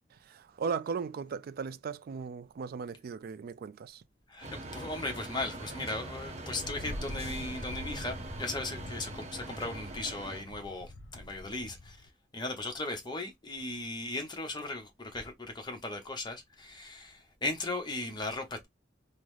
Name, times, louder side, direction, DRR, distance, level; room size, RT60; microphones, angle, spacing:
voice 1, 0.1-4.0, right 5 dB, 50° right, 0.3 m, -37 dB
voice 2, 4.3-12.0 12.3-18.7, left 2 dB, 25° left, 0.8 m, -37 dB
sound 1, 4.4-10.4, right 1 dB, 35° right, 0.7 m, -42 dB
Wind, 6.6-12.1, left 1 dB, 75° left, 0.7 m, -44 dB
3.7 x 2.1 x 3.1 m
head